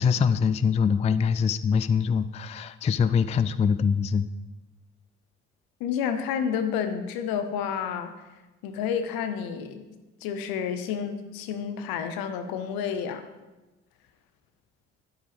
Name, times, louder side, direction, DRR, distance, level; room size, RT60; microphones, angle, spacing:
voice 1, 0.0-4.3, left 6 dB, 20° left, 13 dB, 0.3 m, -23 dB
voice 2, 5.8-8.2 8.6-9.8 10.2-13.3, left 7 dB, 70° left, 9 dB, 0.9 m, -30 dB
8.9 x 8.9 x 3.5 m, 1.1 s
hypercardioid pair, 50°, 37 cm